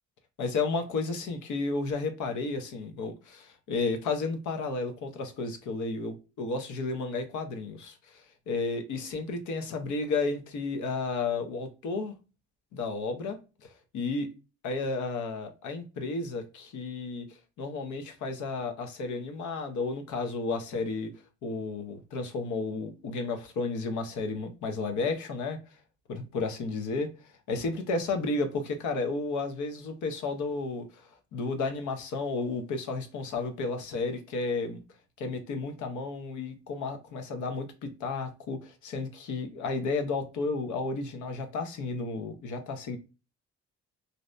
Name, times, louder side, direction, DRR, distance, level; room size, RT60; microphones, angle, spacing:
voice 1, 0.4-12.1 12.7-13.4 13.9-14.3 14.6-17.3 17.6-21.1 21.4-25.6 26.1-27.1 27.5-34.8 35.2-43.0, left 3 dB, 75° left, 0.8 m, -32 dB
2.7 x 2.2 x 2.4 m
cardioid pair, 90°, 30 cm